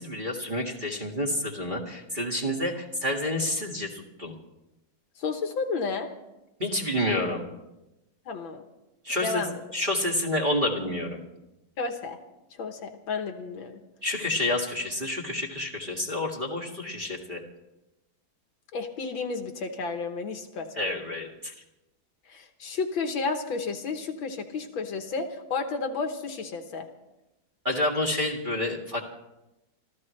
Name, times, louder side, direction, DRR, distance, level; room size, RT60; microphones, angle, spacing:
voice 1, 0.0-4.3 6.6-7.4 9.0-9.4 9.7-11.2 14.0-17.4 20.8-21.5 27.6-29.0, left 1 dB, 25° right, -1 dB, 1.9 m, -29 dB
voice 2, 5.2-6.1 8.3-8.6 9.2-9.6 11.8-12.2 12.6-13.8 18.7-20.9 22.3-26.9, left 4 dB, 65° left, 6 dB, 1.8 m, -32 dB
27.0 x 14.0 x 3.2 m, 0.95 s
omnidirectional pair, 2.4 m